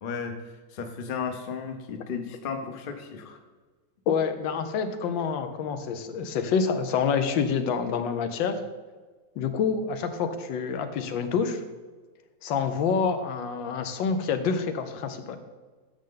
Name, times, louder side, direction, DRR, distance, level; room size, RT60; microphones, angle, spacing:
voice 1, 0.0-3.4, left 6 dB, 45° left, 6 dB, 0.7 m, -34 dB
voice 2, 4.1-8.6 9.4-11.6 12.4-15.4, left 6 dB, 85° left, 8 dB, 1.5 m, -27 dB
10.0 x 6.4 x 3.8 m, 1.3 s
omnidirectional pair, 2.0 m